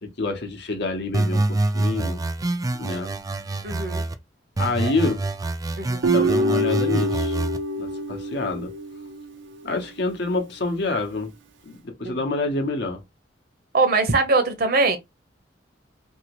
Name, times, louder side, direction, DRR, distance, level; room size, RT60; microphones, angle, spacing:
voice 1, 0.0-2.2 2.7-3.1 4.6-5.2 6.1-7.4 7.8-8.7 9.6-11.3 11.6-13.0, left 3 dB, 65° left, 0.9 m, -27 dB
sound 1, 1.1-4.1 4.6-7.6, right 2 dB, 20° right, 0.3 m, -26 dB
voice 2, 3.6-4.0 4.8-4.9 5.8-6.0 12.0-12.2 13.7-15.0, right 3 dB, 55° right, 0.8 m, -22 dB
Guitar, 6.0-9.3, right 1 dB, 85° right, 0.5 m, -25 dB
2.8 x 2.8 x 2.9 m
head